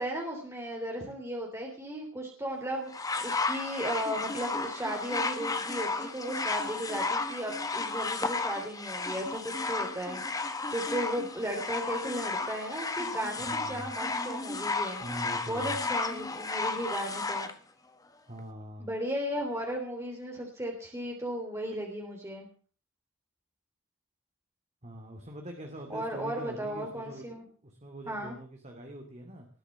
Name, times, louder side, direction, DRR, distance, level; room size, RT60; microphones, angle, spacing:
voice 1, 0.0-15.0 15.5-17.5 18.8-22.5 25.9-27.4 28.1-28.4, equal, 15° right, 1 dB, 3.1 m, -35 dB
sound 1, 2.9-17.5 18.4-18.5, left 3 dB, 20° left, 1.5 m, -33 dB
voice 2, 13.4-13.9 15.0-15.8 18.3-18.9 24.8-29.5, right 1 dB, 35° right, 3 dB, 2.6 m, -43 dB
20.0 x 7.1 x 8.1 m, 0.42 s
head